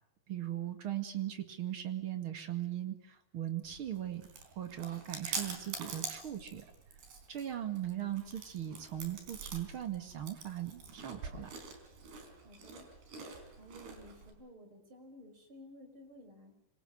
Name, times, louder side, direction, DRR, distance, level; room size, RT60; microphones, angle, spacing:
voice 1, 0.3-4.2 4.6-6.6 7.3-11.5, right 12 dB, 45° right, 8 dB, 1.9 m, -39 dB
Chewing mastication, 3.6-14.3, right 5 dB, 60° right, 6.0 m, -45 dB
voice 2, 12.4-12.9 13.6-16.5, equal, 25° right, 6 dB, 5.7 m, -54 dB
26.5 x 25.5 x 6.4 m, 0.80 s
omnidirectional pair, 5.3 m